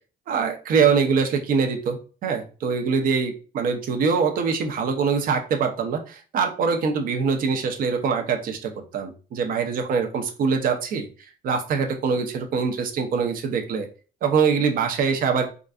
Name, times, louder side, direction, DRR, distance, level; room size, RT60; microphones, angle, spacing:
voice 1, 0.3-11.1 11.4-13.9 14.2-15.5, right 5 dB, 55° right, 5 dB, 0.7 m, -23 dB
3.8 x 2.5 x 2.3 m, 0.36 s
cardioid pair, 110°, 17 cm